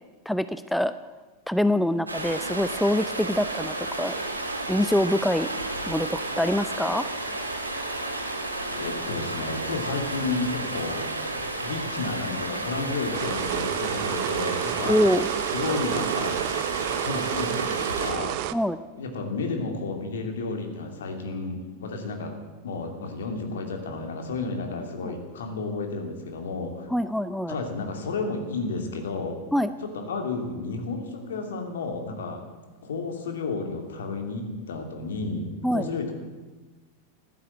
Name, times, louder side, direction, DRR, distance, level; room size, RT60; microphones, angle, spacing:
voice 1, 0.3-0.9 1.5-4.1 4.7-5.5 5.9-7.1 14.9-15.3 18.5-18.8 25.0-25.1 26.9-27.6 29.5-29.7 35.6-35.9, left 1 dB, ahead, 13 dB, 0.5 m, -24 dB
Stream, 2.1-18.1, right 2 dB, 80° right, 2.1 m, -32 dB
voice 2, 8.7-11.1 11.6-15.0 15.5-16.4 17.0-18.4 18.9-22.3 22.6-26.9 27.5-29.4 29.8-32.4 32.8-36.1, left 3 dB, 60° left, 4 dB, 2.8 m, -32 dB
sound 1, 13.1-18.5, right 15 dB, 45° right, 0.6 m, -30 dB
15.0 x 12.0 x 7.9 m, 1.2 s
figure-of-eight pair, 90°, 0 cm